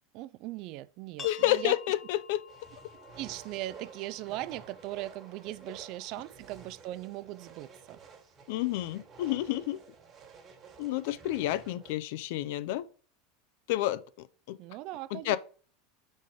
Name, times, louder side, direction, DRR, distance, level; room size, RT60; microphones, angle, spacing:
voice 1, 0.1-1.7 3.2-8.0 14.6-15.4, right 16 dB, 55° right, 0.3 m, -39 dB
voice 2, 1.2-2.4 8.5-9.8 10.8-12.9 13.7-14.6 15.1-15.4, left 15 dB, 70° left, 0.4 m, -30 dB
sound 1, 1.2-6.6, left 6 dB, 35° left, 1.2 m, -52 dB
sound 2, 2.5-11.9, right 5 dB, 35° right, 1.7 m, -52 dB
5.0 x 4.2 x 4.9 m
supercardioid pair, 110°, 0 cm